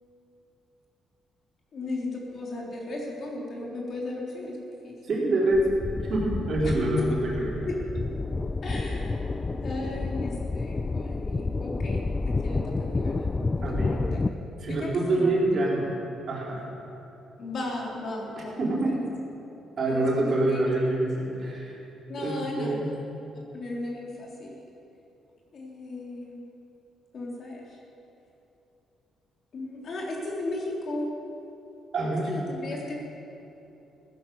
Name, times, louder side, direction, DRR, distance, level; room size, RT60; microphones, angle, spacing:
voice 1, 1.7-4.6 4.8-5.0 6.6-6.7 7.7-7.8 8.6-9.2 9.6-14.2 14.7-15.3 17.4-18.6 19.9-20.9 22.1-22.8 23.5-24.6 25.5-26.4 27.1-27.8 29.5-31.1 32.3-32.9, left 2 dB, 55° left, -2 dB, 3.5 m, -35 dB
voice 2, 5.0-5.7 6.1-7.6 13.6-14.1 14.6-15.9 16.3-16.7 18.3-19.0 19.8-21.8 22.2-22.9 31.9-32.3, right 2 dB, 50° right, -4 dB, 4.4 m, -26 dB
sound 1, 5.5-14.3, left 3 dB, 25° left, 0.5 m, -30 dB
16.0 x 10.0 x 7.3 m, 3.0 s
cardioid pair, 90°, 0 cm